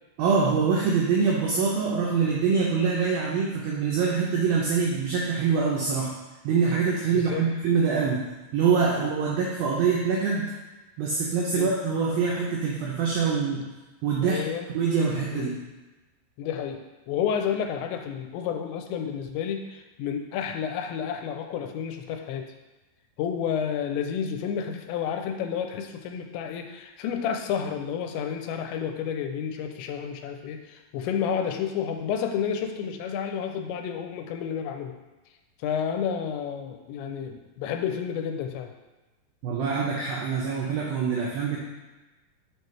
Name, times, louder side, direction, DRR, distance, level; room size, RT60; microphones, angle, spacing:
voice 1, 0.2-6.1 6.4-8.2 8.5-10.5 11.0-13.7 14.0-14.4 14.7-15.6 39.4-41.6, right 5 dB, 90° right, -3 dB, 2.0 m, -24 dB
voice 2, 14.2-14.7 15.3-15.5 16.4-16.8 17.1-22.5 23.2-34.9 35.6-38.7, left 8 dB, 90° left, 5 dB, 2.8 m, -30 dB
6.6 x 4.5 x 3.2 m, 1.1 s
omnidirectional pair, 5.0 m